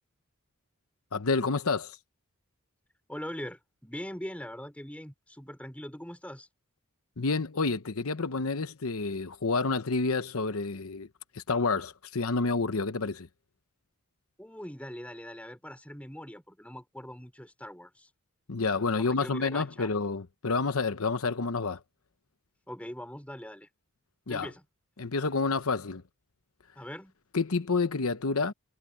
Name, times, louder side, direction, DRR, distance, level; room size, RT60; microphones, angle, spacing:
voice 1, 1.1-2.0 7.2-11.1 11.3-13.3 18.5-21.8 24.3-24.5 25.0-26.0 27.3-28.5, left 4 dB, 80° left, 0.9 m, -29 dB
voice 2, 3.1-6.5 14.4-18.1 19.0-19.9 22.7-23.7 24.3-24.6 26.7-27.1, equal, 5° left, 4.7 m, -42 dB
head